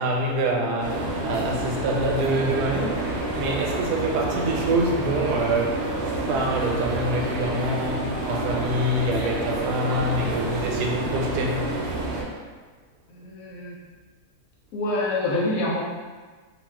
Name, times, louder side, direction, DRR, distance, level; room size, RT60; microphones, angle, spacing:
voice 1, 0.0-11.7, right 1 dB, 85° right, 0 dB, 1.1 m, -26 dB
sound 1, 0.8-12.2, right 1 dB, 65° right, 0.7 m, -29 dB
voice 2, 13.1-13.8 14.7-15.8, left 2 dB, 70° left, -4 dB, 1.0 m, -26 dB
2.6 x 2.3 x 3.3 m, 1.4 s
omnidirectional pair, 1.7 m